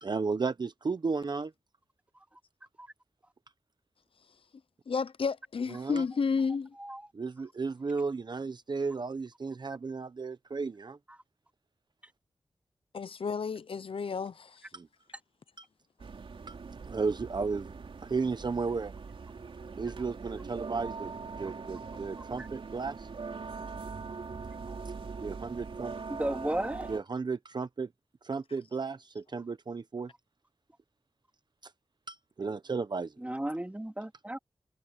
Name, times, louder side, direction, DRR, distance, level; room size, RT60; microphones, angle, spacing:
voice 1, 0.0-1.5 5.7-6.0 7.1-11.0 14.7-14.9 15.6-15.7 16.5-16.6 16.9-17.7 18.0-18.9 19.8-21.1 21.4-23.1 25.2-25.9 26.9-27.9 28.2-30.1 31.6-31.7 32.1-33.1, right 4 dB, 50° right, 0.9 m, -34 dB
voice 2, 4.9-6.7 12.9-14.6, left 5 dB, 75° left, 0.8 m, -31 dB
sound 1, 16.0-27.0, right 4 dB, 75° right, 3.5 m, -42 dB
voice 3, 26.1-26.9 33.2-34.4, right 1 dB, 15° right, 3.6 m, -34 dB
wide cardioid pair, 85°, 9 cm